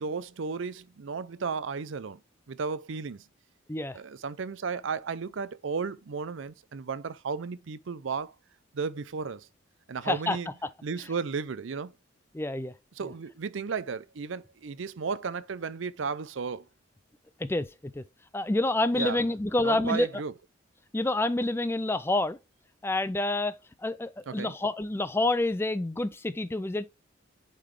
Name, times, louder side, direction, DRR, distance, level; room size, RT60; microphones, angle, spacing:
voice 1, 0.0-2.2 2.5-3.2 3.9-8.3 8.7-9.5 9.9-10.5 10.8-11.9 13.0-16.7 18.9-19.2 19.6-20.3 24.3-24.5, right 5 dB, 70° right, 0.5 m, -34 dB
voice 2, 10.1-10.7 12.3-12.7 17.4-18.0 18.3-20.1 20.9-22.4 22.8-26.9, left 2 dB, 10° left, 0.3 m, -28 dB
8.3 x 3.8 x 3.2 m
head